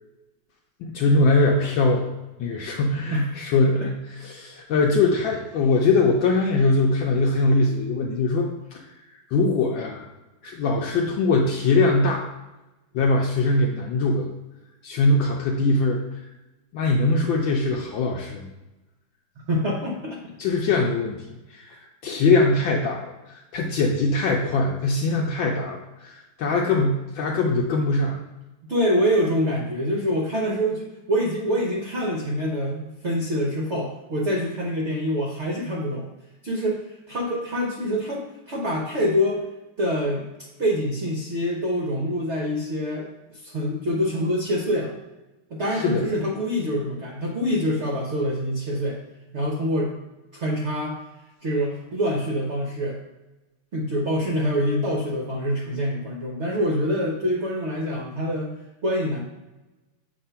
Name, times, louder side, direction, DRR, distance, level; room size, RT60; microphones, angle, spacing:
voice 1, 0.8-2.1 2.4-8.8 9.3-10.1 10.4-12.3 12.9-14.3 14.8-16.2 16.7-18.5 20.4-28.2 45.7-46.1, left 3 dB, 70° left, 0 dB, 1.3 m, -22 dB
voice 2, 19.5-20.2 28.7-36.1 36.4-39.4 39.8-40.2 40.6-45.0 45.5-49.0 49.3-49.9 50.3-51.0 51.4-53.0 53.7-58.5 58.8-59.2, equal, 65° right, -1 dB, 0.6 m, -25 dB
7.5 x 2.6 x 5.5 m, 1.0 s
omnidirectional pair, 2.4 m